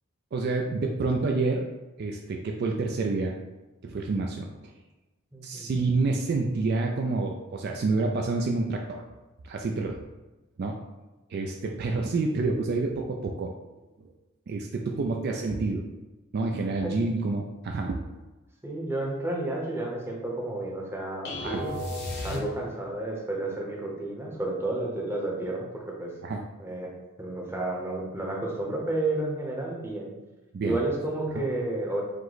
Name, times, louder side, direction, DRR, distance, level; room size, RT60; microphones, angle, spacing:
voice 1, 0.3-1.7 2.0-3.3 3.8-4.5 5.4-9.0 9.4-10.0 10.6-10.8 11.3-13.5 14.0-14.1 14.5-15.8 16.3-18.0 21.4-21.6 26.2-26.4 30.5-30.8 31.3-31.4, right 3 dB, 50° right, 2 dB, 0.3 m, -28 dB
voice 2, 5.3-5.7 14.9-15.1 16.8-17.0 18.6-21.8 22.2-26.1 26.6-26.9 27.2-30.1 30.6-32.0, right 2 dB, 10° right, -2 dB, 0.7 m, -31 dB
sound 1, 21.2-23.0, left 2 dB, 50° left, 0.9 m, -34 dB
4.8 x 2.1 x 3.9 m, 1.1 s
head